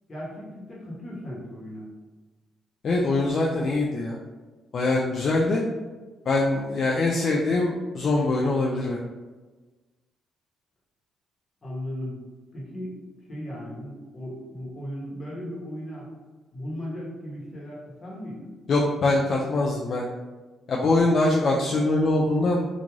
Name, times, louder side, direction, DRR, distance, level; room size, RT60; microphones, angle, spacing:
voice 1, 0.1-1.9 11.6-12.2 12.5-13.0 13.3-16.1 16.5-18.5, equal, 35° left, -5 dB, 1.1 m, -36 dB
voice 2, 2.8-4.2 4.7-5.6 6.3-9.0 18.7-20.1 20.7-22.7, left 2 dB, 55° left, -2 dB, 0.3 m, -23 dB
2.5 x 2.4 x 3.0 m, 1.3 s
cardioid pair, 90°, 0 cm